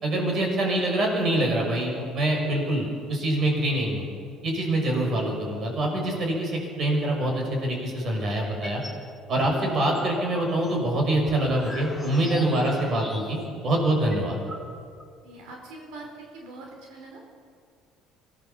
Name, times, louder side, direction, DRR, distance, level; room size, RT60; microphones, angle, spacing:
voice 1, 0.0-4.1 4.4-8.8 9.3-14.4, right 1 dB, 40° right, 0 dB, 6.5 m, -25 dB
sound 1, 8.4-9.0 9.4-13.6 13.8-13.9 14.1-15.1, left 1 dB, ahead, 2.7 m, -41 dB
voice 2, 15.2-17.2, right 2 dB, 75° right, 1 dB, 4.4 m, -43 dB
25.0 x 18.0 x 7.3 m, 2.2 s
cardioid pair, 150°, 0 cm